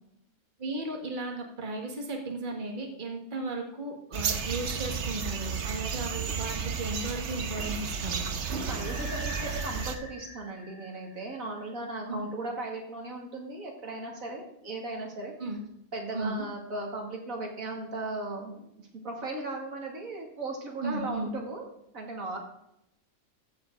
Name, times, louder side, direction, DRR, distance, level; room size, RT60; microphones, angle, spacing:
voice 1, 0.6-8.2 12.1-12.3 15.4-15.6 16.1-16.4 20.8-21.3, right 2 dB, 35° right, 2 dB, 1.8 m, -35 dB
sound 1, 4.1-10.0, right 6 dB, 60° right, 1.2 m, -32 dB
voice 2, 8.6-15.3 15.9-21.6 21.9-22.4, right 2 dB, 80° right, 0 dB, 2.7 m, -37 dB
sound 2, 8.8-11.6, left 1 dB, 70° left, 3.4 m, -44 dB
14.5 x 7.4 x 3.8 m, 0.79 s
omnidirectional pair, 1.4 m